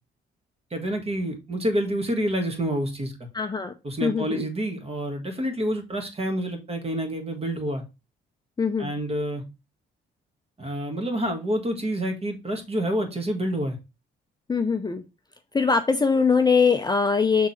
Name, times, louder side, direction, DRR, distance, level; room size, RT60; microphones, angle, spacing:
voice 1, 0.7-3.3 3.8-7.8 8.8-9.4 10.6-13.8, equal, 30° right, 4 dB, 1.8 m, -28 dB
voice 2, 3.3-3.7 4.0-4.5 8.6-8.9 14.5-15.0 15.5-17.5, left 5 dB, 20° left, 6 dB, 0.5 m, -22 dB
6.3 x 3.6 x 4.2 m, 0.26 s
cardioid pair, 90°, 20 cm